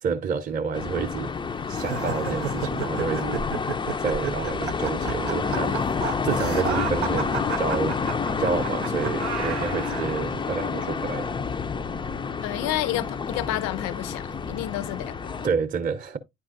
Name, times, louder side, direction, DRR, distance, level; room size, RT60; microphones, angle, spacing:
voice 1, 0.0-1.3 1.7-3.5 4.0-8.0 8.4-11.3 15.4-16.2, right 5 dB, 25° right, 0.7 m, -29 dB
sound 1, 0.7-15.5, left 5 dB, 15° left, 0.4 m, -29 dB
sound 2, 1.8-10.2, right 6 dB, 80° right, 0.7 m, -32 dB
voice 2, 12.4-15.3, left 15 dB, 55° left, 0.6 m, -30 dB
9.9 x 4.6 x 2.5 m
figure-of-eight pair, 50°, 32 cm